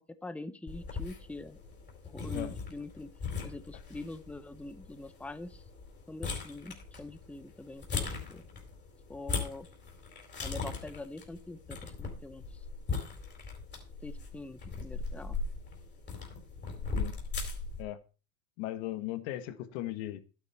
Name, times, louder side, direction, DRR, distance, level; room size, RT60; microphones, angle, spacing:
voice 1, 0.2-1.6 2.0-3.1 3.4-5.6 6.1-8.4 9.1-9.7 10.4-12.6 14.0-15.4, left 2 dB, 5° left, 12 dB, 0.8 m, -44 dB
sound 1, 0.7-17.8, left 4 dB, 25° left, 4.3 m, -39 dB
voice 2, 18.6-20.2, left 14 dB, 65° left, 11 dB, 1.7 m, -37 dB
11.5 x 9.4 x 4.4 m, 0.33 s
supercardioid pair, 115°, 43 cm